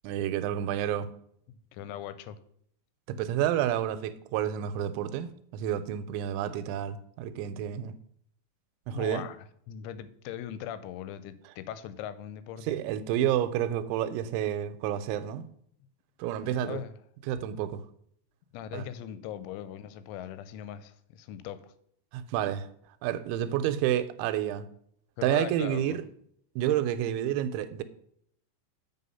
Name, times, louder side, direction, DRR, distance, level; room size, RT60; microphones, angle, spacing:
voice 1, 0.0-1.1 3.1-7.9 8.9-9.3 12.7-15.5 16.2-16.8 17.3-17.8 18.7-18.8 22.1-22.7 23.0-24.7 25.2-26.0 26.6-27.8, right 11 dB, 85° right, 2.9 m, -29 dB
voice 2, 1.5-2.4 8.9-9.4 9.7-12.8 16.4-16.9 18.5-21.7 25.2-26.0, left 10 dB, 90° left, 3.0 m, -40 dB
7.7 x 5.6 x 5.5 m
omnidirectional pair, 5.4 m